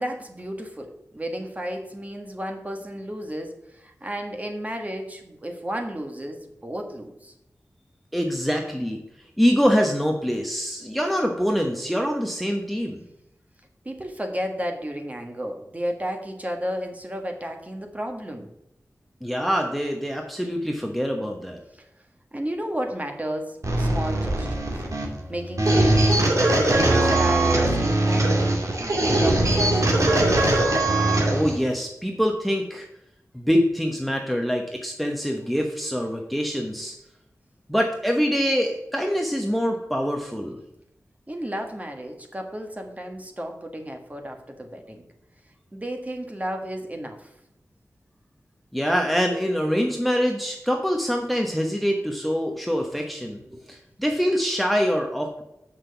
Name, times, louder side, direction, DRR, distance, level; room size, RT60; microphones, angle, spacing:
voice 1, 0.0-7.3 13.8-18.5 21.7-21.9 22.3-30.6 41.3-45.1 45.7-47.3 53.5-53.6, equal, 25° right, 3 dB, 1.5 m, -33 dB
voice 2, 8.1-9.0 9.4-13.0 19.2-21.6 31.3-32.9 33.3-36.9 37.7-40.6 48.7-53.4 53.7-55.4, equal, ahead, 2 dB, 1.1 m, -24 dB
sound 1, 23.6-31.6, right 1 dB, 60° right, 2.2 m, -21 dB
6.6 x 5.9 x 6.8 m, 0.85 s
wide cardioid pair, 65°, 6 cm